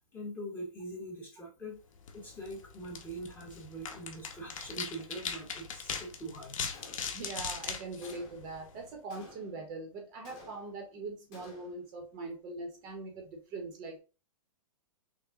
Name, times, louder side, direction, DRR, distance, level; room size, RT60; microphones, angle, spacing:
voice 1, 0.1-1.8 2.1-6.6, right 1 dB, 10° left, 1.0 m, -43 dB
sound 1, 2.0-8.9, left 6 dB, 65° left, 1.0 m, -41 dB
Gunshot gunfire, 6.7-7.4 8.0-8.6 9.1-9.7 10.2-10.9 11.3-11.9, left 3 dB, 25° left, 1.3 m, -54 dB
voice 2, 7.1-14.0, right 3 dB, 25° right, 0.8 m, -42 dB
6.0 x 2.1 x 3.6 m
hypercardioid pair, 165°, 18 cm